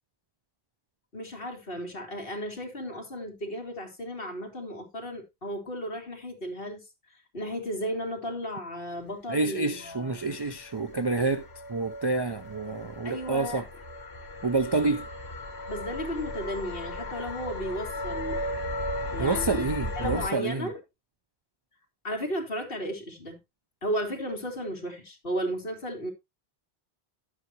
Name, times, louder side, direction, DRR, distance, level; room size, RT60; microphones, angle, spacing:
voice 1, 1.1-6.8 7.3-10.2 13.0-13.6 14.8-14.9 15.7-18.4 19.1-19.6 20.0-20.8 22.0-23.4 23.8-26.1, equal, 60° left, 2.5 m, -34 dB
voice 2, 9.3-13.6 14.4-15.0 19.2-20.7, right 3 dB, 35° right, 0.4 m, -28 dB
sound 1, 9.7-20.3, left 1 dB, 80° left, 2.2 m, -36 dB
11.0 x 8.0 x 2.9 m
omnidirectional pair, 1.1 m